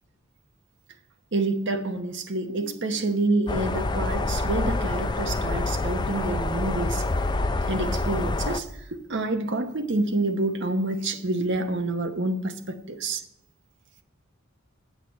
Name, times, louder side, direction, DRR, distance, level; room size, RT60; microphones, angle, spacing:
voice 1, 1.3-7.0 7.7-8.7 8.9-13.2, right 2 dB, 55° right, 7 dB, 1.0 m, -27 dB
sound 1, 3.5-8.6, left 2 dB, 20° left, 0.4 m, -27 dB
8.4 x 6.6 x 6.2 m, 0.85 s
head